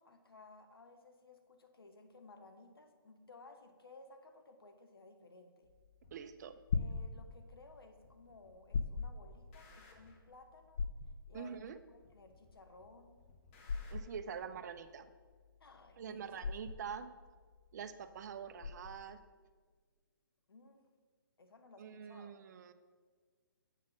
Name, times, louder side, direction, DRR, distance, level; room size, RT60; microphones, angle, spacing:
voice 1, 0.0-5.7 6.7-10.8 11.3-13.2 15.6-16.3 20.5-20.8 21.4-22.4, left 3 dB, 85° left, 6 dB, 1.1 m, -58 dB
sound 1, 5.7-19.2, left 5 dB, 65° left, 0.5 m, -41 dB
sound 2, 6.0-6.2 7.0-7.1 8.0-8.5 8.8-10.3 11.0-11.1 12.0-12.5 12.8-14.0, left 3 dB, 35° left, 1.2 m, -62 dB
voice 2, 6.1-6.6 11.3-11.8 13.9-15.1 16.0-17.1 17.7-19.2 21.8-22.7, right 7 dB, 50° right, 11 dB, 0.5 m, -45 dB
7.4 x 4.1 x 6.1 m, 1.5 s
hypercardioid pair, 145°, 12 cm